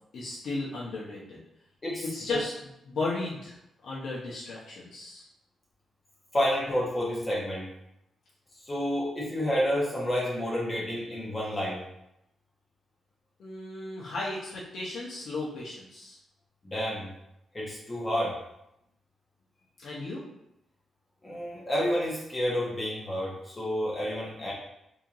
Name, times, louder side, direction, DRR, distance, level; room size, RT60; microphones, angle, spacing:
voice 1, 0.1-1.4 2.1-2.5 2.9-3.6 3.8-5.2 13.4-16.2 19.8-20.2, left 2 dB, 65° left, -7 dB, 0.9 m, -35 dB
voice 2, 6.3-7.7 8.6-11.8 16.6-17.1 17.5-18.3 21.2-24.5, equal, 25° left, -6 dB, 1.1 m, -29 dB
4.3 x 2.9 x 2.6 m, 0.83 s
cardioid pair, 105°, 0 cm